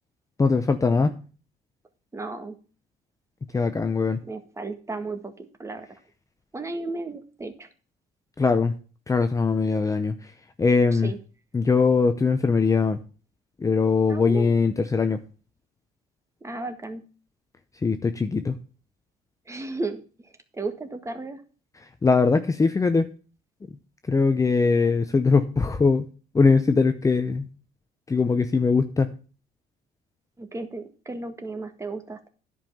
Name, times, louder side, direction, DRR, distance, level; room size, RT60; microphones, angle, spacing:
voice 1, 0.4-1.2 3.5-4.2 8.4-8.7 9.1-10.3 10.6-11.1 11.5-13.0 13.6-15.2 17.8-18.6 22.0-23.1 24.1-26.1 26.3-27.5 28.1-29.1, left 4 dB, 20° left, 8 dB, 0.7 m, -21 dB
voice 2, 2.1-2.5 4.2-5.9 6.5-7.7 10.9-11.2 14.1-14.5 16.4-17.0 19.5-21.4 30.4-32.3, right 3 dB, 15° right, 7 dB, 1.7 m, -34 dB
10.5 x 5.5 x 7.1 m, 0.37 s
cardioid pair, 110°, 17 cm